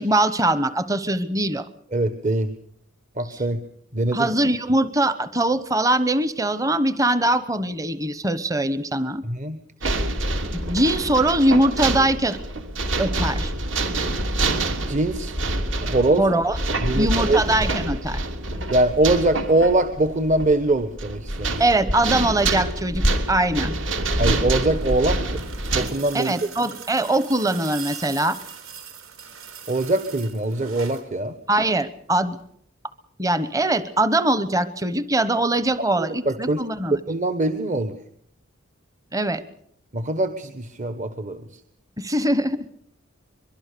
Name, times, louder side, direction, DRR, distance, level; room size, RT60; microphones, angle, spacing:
voice 1, 0.0-1.6 3.3-3.4 4.1-9.2 10.5-12.4 13.0-13.5 16.2-16.6 16.9-18.2 21.6-23.7 26.1-28.4 31.5-32.4 33.2-37.0 39.1-39.4 42.0-42.6, right 1 dB, 15° right, 13 dB, 1.0 m, -22 dB
voice 2, 1.9-2.5 3.2-3.6 3.9-4.3 9.3-9.6 14.9-15.3 15.8-16.2 16.8-17.4 18.7-21.6 24.2-25.4 25.7-26.3 29.7-31.3 36.0-36.6 36.9-37.9 39.9-41.4, right 2 dB, 35° right, 10 dB, 1.3 m, -22 dB
sound 1, 9.8-25.9, right 2 dB, 65° right, 3.2 m, -26 dB
sound 2, 24.4-31.1 32.4-32.5, right 7 dB, 90° right, 4.1 m, -41 dB
23.5 x 23.0 x 6.8 m, 0.68 s
head